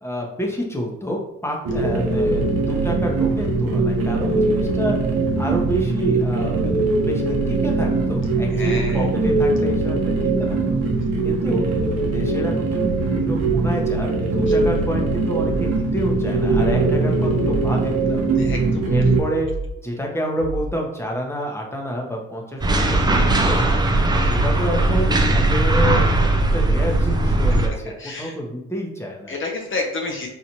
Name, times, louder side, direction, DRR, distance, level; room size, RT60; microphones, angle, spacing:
voice 1, 0.0-5.0 5.4-6.6 7.0-10.8 11.2-11.7 12.1-18.2 18.9-19.5 19.8-23.8 24.2-29.4, equal, 10° left, -1 dB, 0.8 m, -29 dB
sound 1, 1.6-19.2, right 3 dB, 55° right, 0.8 m, -21 dB
voice 2, 8.6-9.1 18.4-18.9 27.9-28.3 29.3-30.3, left 3 dB, 40° left, 1 dB, 0.6 m, -29 dB
sound 2, 13.3-13.7 14.4-14.8 15.4-15.8 16.4-16.8 17.3-17.7 18.4-18.8 19.4-19.8 20.4-20.8, right 2 dB, 80° right, 1.1 m, -31 dB
sound 3, 22.6-27.7, right 2 dB, 15° right, 0.4 m, -18 dB
4.3 x 2.4 x 2.8 m, 0.86 s
cardioid pair, 90°, 30 cm